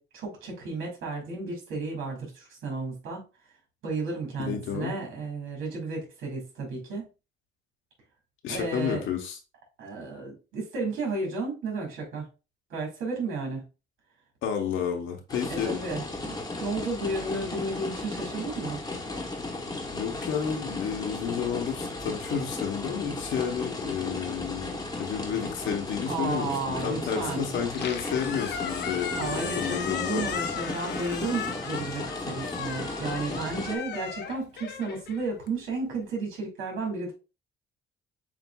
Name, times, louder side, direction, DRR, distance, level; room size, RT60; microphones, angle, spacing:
voice 1, 0.0-3.2 3.8-7.1 8.5-9.0 9.8-12.2 12.7-13.6 15.5-18.8 26.1-27.5 29.2-37.1, right 3 dB, 75° right, 2.1 m, -33 dB
voice 2, 4.4-5.0 8.4-9.4 14.4-15.8 19.9-30.3, left 7 dB, 80° left, 1.0 m, -31 dB
sound 1, 15.3-33.8, left 2 dB, 20° left, 1.0 m, -35 dB
Squeak, 27.6-35.8, left 7 dB, 60° left, 0.7 m, -36 dB
7.3 x 2.6 x 2.3 m
cardioid pair, 90°, 20 cm